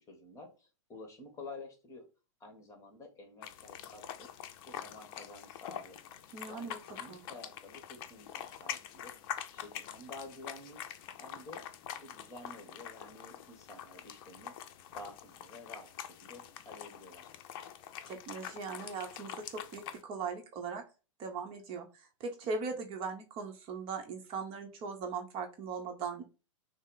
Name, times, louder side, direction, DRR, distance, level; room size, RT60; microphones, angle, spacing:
voice 1, 0.0-2.1 2.4-4.3 4.7-6.0 6.5-9.1 9.5-10.8 11.2-11.6 12.0-14.5 14.9-17.3, left 2 dB, 20° left, 4 dB, 1.4 m, -50 dB
sound 1, 3.4-20.0, left 10 dB, 45° left, 0.6 m, -45 dB
voice 2, 6.3-6.8 7.1-7.2 18.1-20.8 21.2-26.2, right 4 dB, 35° right, 4 dB, 0.9 m, -39 dB
6.1 x 2.0 x 3.9 m, 0.32 s
figure-of-eight pair, 105°, 17 cm